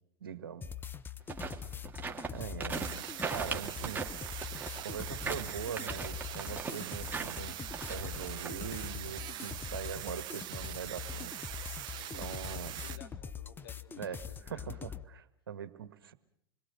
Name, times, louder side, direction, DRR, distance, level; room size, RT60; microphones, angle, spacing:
voice 1, 0.2-0.7 2.3-2.9 3.3-4.1 4.8-7.6 7.9-11.3 12.1-12.8 14.0-14.2 14.5-16.1, right 8 dB, 75° right, 11 dB, 1.7 m, -42 dB
sound 1, 0.6-15.1, left 7 dB, 15° left, 0.9 m, -43 dB
sound 2, 1.2-8.5, right 5 dB, 15° right, 2.4 m, -39 dB
sound 3, 2.7-13.0, right 13 dB, 40° right, 1.0 m, -43 dB
voice 2, 12.0-14.8, left 6 dB, 75° left, 4 dB, 3.6 m, -55 dB
27.0 x 21.5 x 6.6 m, 0.70 s
hypercardioid pair, 95°, 12 cm